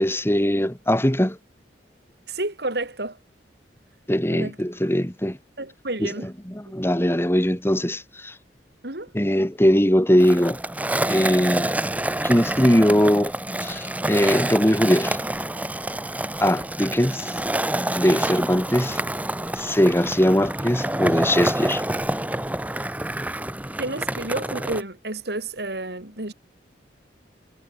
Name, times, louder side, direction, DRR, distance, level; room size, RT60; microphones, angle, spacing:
voice 1, 0.0-1.4 4.1-5.4 6.0-6.1 6.5-8.3 9.1-10.6 11.1-11.7 12.2-13.3 13.6-15.2 16.4-17.3 17.9-19.0 19.5-21.8, equal, 15° left, 3.2 m, -20 dB
voice 2, 2.3-3.2 4.3-4.6 5.6-6.3 8.8-9.1 23.8-26.3, right 2 dB, 60° right, 3.8 m, -30 dB
Skateboard, 10.2-24.8, right 1 dB, 10° right, 1.4 m, -27 dB
head